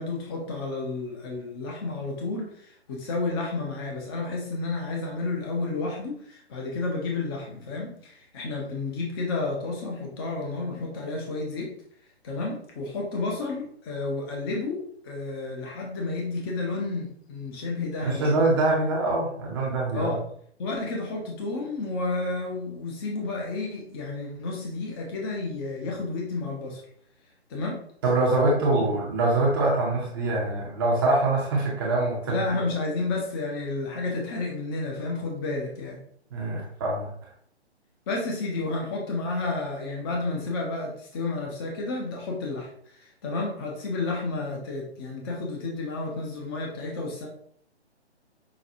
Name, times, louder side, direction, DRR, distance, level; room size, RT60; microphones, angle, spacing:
voice 1, 0.0-11.7 12.2-18.5 19.9-20.2 20.6-26.8 27.5-27.8 28.7-28.8 32.3-36.0 38.1-47.3, left 3 dB, 20° left, 0 dB, 0.7 m, -31 dB
voice 2, 18.0-20.2 28.0-32.6 36.3-37.1, right 2 dB, 20° right, -3 dB, 0.6 m, -24 dB
5.8 x 2.3 x 2.6 m, 0.62 s
figure-of-eight pair, 135°, 34 cm